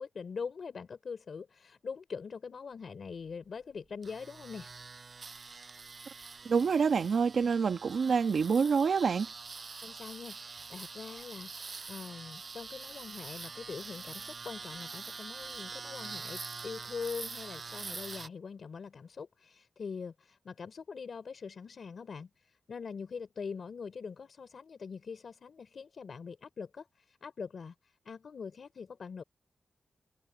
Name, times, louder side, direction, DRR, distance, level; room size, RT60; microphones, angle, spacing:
voice 1, 0.0-4.7 9.8-27.7 28.1-29.2, left 5 dB, 60° left, 3.6 m, -43 dB
sound 1, 4.0-18.3, right 4 dB, 45° right, 6.2 m, -45 dB
voice 2, 6.4-9.3, right 5 dB, 65° right, 1.4 m, -27 dB
open air
wide cardioid pair, 125°, 0 cm